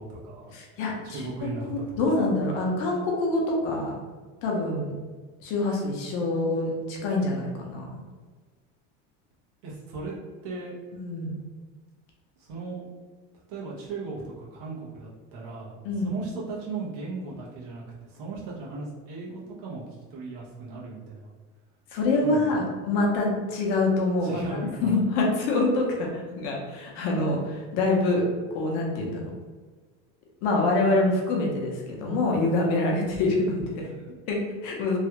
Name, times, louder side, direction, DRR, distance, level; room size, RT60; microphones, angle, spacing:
voice 1, 0.0-0.5 1.0-2.3 9.6-10.1 10.4-10.7 12.4-12.9 13.5-15.8 16.0-19.8 20.1-21.3 22.2-22.6 24.2-25.0 26.0-26.1 33.8-34.1, right 3 dB, 80° right, -5 dB, 1.1 m, -37 dB
voice 2, 0.5-4.0 4.4-4.9 5.4-8.0 11.0-11.3 15.8-16.1 21.9-24.4 24.8-28.2 28.5-29.1 30.4-33.9 34.3-35.0, left 2 dB, 45° left, -1 dB, 0.6 m, -26 dB
3.1 x 2.4 x 2.9 m, 1.4 s
cardioid pair, 175°, 35 cm